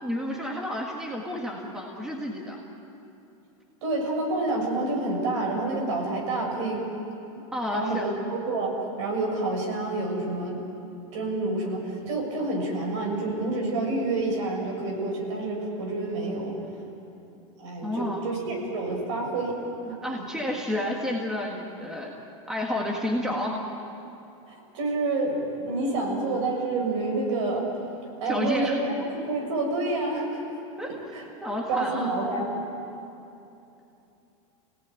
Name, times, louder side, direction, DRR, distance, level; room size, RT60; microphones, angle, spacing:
voice 1, 0.0-2.6 7.5-8.1 17.8-18.2 20.0-22.1 22.5-23.6 28.2-28.8 30.8-30.9 31.4-32.1, left 1 dB, 5° right, -1 dB, 1.7 m, -30 dB
voice 2, 3.8-6.8 7.7-10.6 11.1-16.6 17.6-19.6 19.8-20.0 24.5-27.7 28.2-30.4 31.1-31.3 31.7-32.6, right 2 dB, 60° right, 0 dB, 7.0 m, -28 dB
28.5 x 18.0 x 9.2 m, 2.8 s
supercardioid pair, 175°, 17 cm